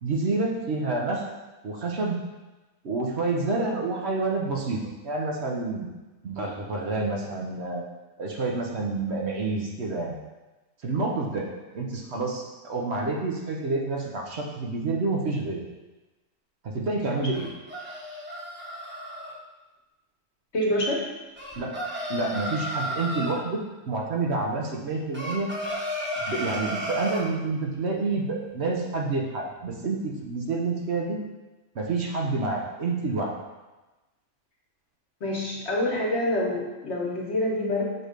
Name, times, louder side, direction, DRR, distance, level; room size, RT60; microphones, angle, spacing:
voice 1, 0.0-1.2 1.6-2.2 2.8-5.9 6.2-7.8 8.2-10.2 10.8-11.5 11.7-15.6 16.6-17.5 21.6-21.8 22.1-25.5 26.3-31.2 31.7-33.3, right 3 dB, 55° right, -1 dB, 1.0 m, -28 dB
sound 1, 17.3-19.3 21.4-23.4 25.1-27.3, equal, 10° right, 1.0 m, -33 dB
voice 2, 20.5-21.0 35.2-37.9, left 1 dB, 55° left, -2 dB, 1.4 m, -26 dB
6.5 x 3.2 x 5.1 m, 1.1 s
omnidirectional pair, 1.4 m